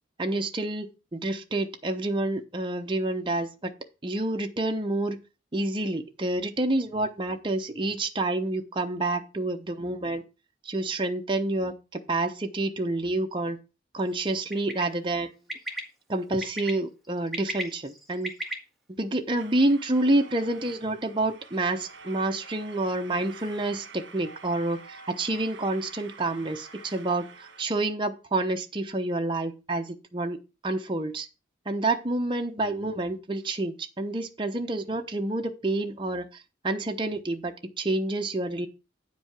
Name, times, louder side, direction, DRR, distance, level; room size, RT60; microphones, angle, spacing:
voice 1, 0.2-3.7 4.0-5.2 5.5-10.2 10.6-13.6 13.9-15.3 16.1-18.3 19.0-30.4 30.6-31.3 31.7-36.3 36.6-38.7, right 2 dB, 25° right, 4 dB, 0.9 m, -28 dB
Bird, 14.5-14.8 15.5-15.8 16.4-16.7 17.2-18.5, right 1 dB, ahead, 1.8 m, -33 dB
sound 1, 19.3-27.6, right 4 dB, 70° right, 1.4 m, -48 dB
9.1 x 5.2 x 5.9 m, 0.29 s
head